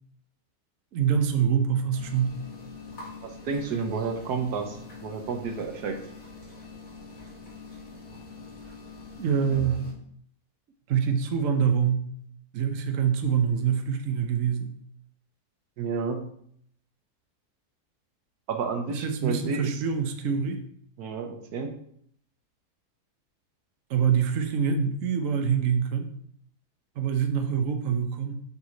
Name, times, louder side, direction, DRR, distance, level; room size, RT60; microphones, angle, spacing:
voice 1, 0.9-2.4 9.2-9.9 10.9-12.1 12.5-14.7 18.9-20.6 23.9-26.1 27.0-28.4, right 7 dB, 60° right, 5 dB, 1.1 m, -25 dB
sound 1, 1.9-9.9, left 2 dB, 70° left, 3.3 m, -43 dB
voice 2, 3.2-6.0 15.8-16.3 18.5-19.8 21.0-21.7, right 5 dB, 80° right, 5 dB, 1.5 m, -31 dB
8.3 x 4.8 x 3.9 m, 0.65 s
omnidirectional pair, 1.7 m